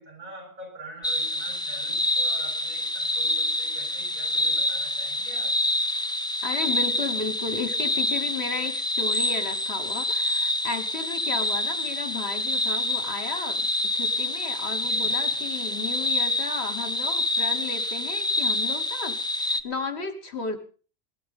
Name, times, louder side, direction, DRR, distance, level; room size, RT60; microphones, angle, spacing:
voice 1, 0.0-5.6 14.8-15.4, right 2 dB, 65° right, 1 dB, 8.1 m, -45 dB
sound 1, 1.0-19.6, left 1 dB, 5° left, 0.4 m, -27 dB
voice 2, 6.4-13.6 13.9-20.6, left 4 dB, 45° left, 9 dB, 1.5 m, -34 dB
19.0 x 12.5 x 5.4 m, 0.39 s
omnidirectional pair, 1.6 m